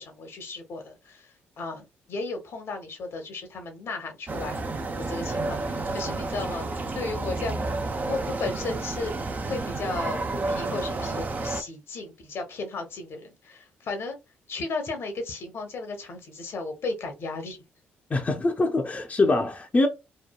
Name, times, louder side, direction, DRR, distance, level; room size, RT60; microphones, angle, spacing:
voice 1, 0.0-4.6 5.0-7.7 8.1-9.2 9.5-14.2 14.5-17.6, left 3 dB, 60° left, 0.9 m, -35 dB
sound 1, 4.3-11.6, right 3 dB, 35° right, 0.5 m, -30 dB
voice 2, 18.1-19.9, left 2 dB, 30° left, 0.6 m, -23 dB
2.9 x 2.2 x 2.2 m
hypercardioid pair, 50°, 5 cm